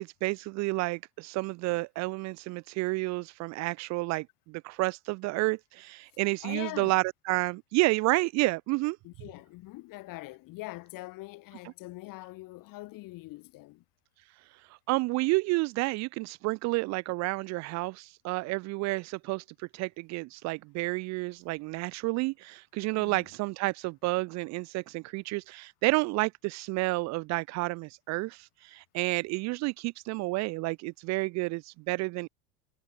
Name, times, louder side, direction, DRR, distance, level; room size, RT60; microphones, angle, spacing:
voice 1, 0.0-9.0 14.9-19.4 19.7-32.3, right 23 dB, 40° right, 0.6 m, -30 dB
voice 2, 6.4-7.0 9.0-13.8 22.9-23.3, left 20 dB, 45° left, 5.6 m, -43 dB
supercardioid pair, 130°, 44 cm